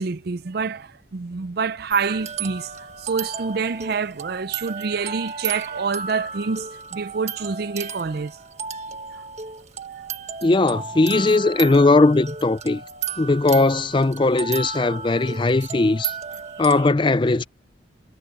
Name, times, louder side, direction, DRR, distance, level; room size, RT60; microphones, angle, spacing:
voice 1, 0.0-8.4 9.1-9.2, right 5 dB, 50° right, 0.5 m, -27 dB
sound 1, 1.9-16.8, right 6 dB, 35° right, 1.6 m, -34 dB
voice 2, 10.4-12.8 13.2-16.1 16.6-17.5, left 2 dB, 25° left, 0.4 m, -18 dB
head